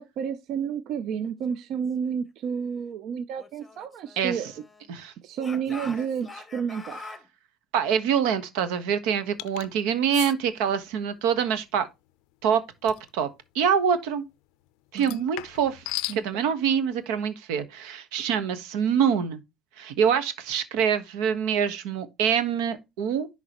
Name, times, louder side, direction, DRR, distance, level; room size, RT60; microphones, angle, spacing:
voice 1, 0.0-4.6 5.2-7.0 14.9-15.3 16.1-16.4, right 7 dB, 50° right, 0.6 m, -31 dB
Speech / Shout, 3.4-4.9 5.4-7.3, left 3 dB, 10° left, 0.9 m, -44 dB
voice 2, 7.7-11.9 12.4-13.3 13.5-14.2 14.9-15.8 16.1-19.4 19.8-23.3, right 7 dB, 80° right, 1.3 m, -25 dB
sound 1, 9.4-9.7 10.1-10.3 12.9-13.1 15.0-16.2, left 21 dB, 75° left, 0.4 m, -34 dB
10.5 x 3.9 x 3.0 m
cardioid pair, 160°, 0 cm